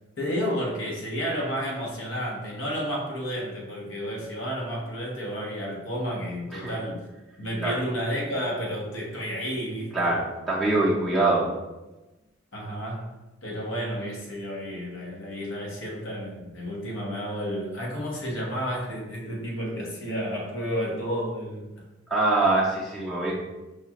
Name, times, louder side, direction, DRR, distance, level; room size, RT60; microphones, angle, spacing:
voice 1, 0.2-7.0 7.4-10.2 12.5-13.1 13.4-21.7, equal, 80° left, -2 dB, 1.0 m, -31 dB
voice 2, 9.9-11.5 22.1-23.3, right 2 dB, ahead, -7 dB, 0.5 m, -23 dB
4.9 x 2.3 x 2.9 m, 1.1 s
head